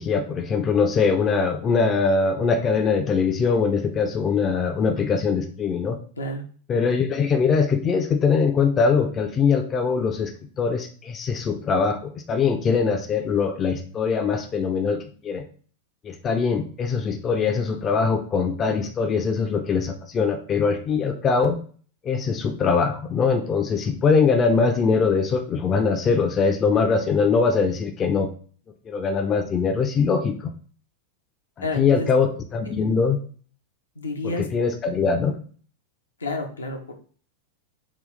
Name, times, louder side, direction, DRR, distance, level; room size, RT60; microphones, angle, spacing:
voice 1, 0.0-6.0 6.7-10.3 10.6-15.4 16.0-21.6 22.0-28.3 28.9-30.5 31.6-33.2 34.2-35.3, left 5 dB, 25° left, 6 dB, 0.4 m, -22 dB
voice 2, 31.6-32.1 32.7-32.8 34.0-34.5 36.2-36.9, left 2 dB, 75° left, 3 dB, 0.6 m, -30 dB
3.9 x 2.3 x 3.2 m, 0.43 s
figure-of-eight pair, 90°, 0 cm